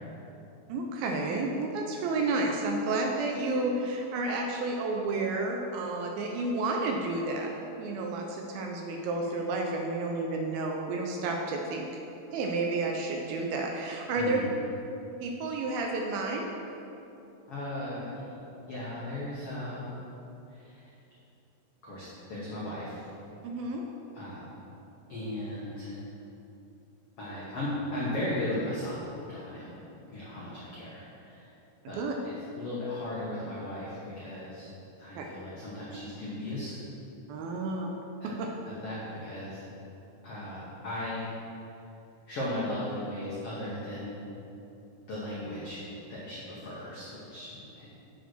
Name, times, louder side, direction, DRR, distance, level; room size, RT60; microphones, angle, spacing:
voice 1, 0.7-7.5 7.8-11.9 12.3-14.4 15.2-16.5 23.4-23.9 32.0-32.1 35.2-35.3 37.3-37.9 38.2-38.5, right 2 dB, 80° right, 1 dB, 2.2 m, -31 dB
voice 2, 14.2-14.5 17.5-18.4 18.7-19.9 20.5-20.9 21.8-23.1 24.1-24.6 25.1-26.0 27.2-29.8 30.1-31.5 31.9-34.7 35.0-36.7 38.2-38.4 38.6-39.6 40.2-41.3 42.3-44.1 45.1-45.8 46.1-47.9, left 1 dB, 85° left, -7 dB, 1.3 m, -37 dB
7.8 x 5.2 x 6.0 m, 2.8 s
omnidirectional pair, 4.7 m